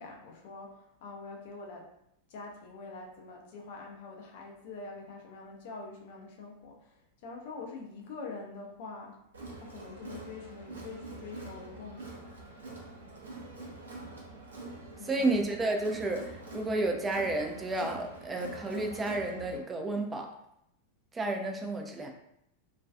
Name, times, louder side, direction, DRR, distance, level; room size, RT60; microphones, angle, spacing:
voice 1, 0.0-1.9 2.3-9.2 9.6-12.2 15.0-15.3, left 3 dB, 50° left, 0 dB, 0.5 m, -45 dB
Crowd, 9.3-19.6, right 2 dB, 70° right, 0.5 m, -45 dB
voice 2, 15.0-20.3 21.1-22.1, right 2 dB, 15° right, 2 dB, 0.4 m, -31 dB
2.4 x 2.3 x 2.3 m, 0.77 s
figure-of-eight pair, 90°, 0 cm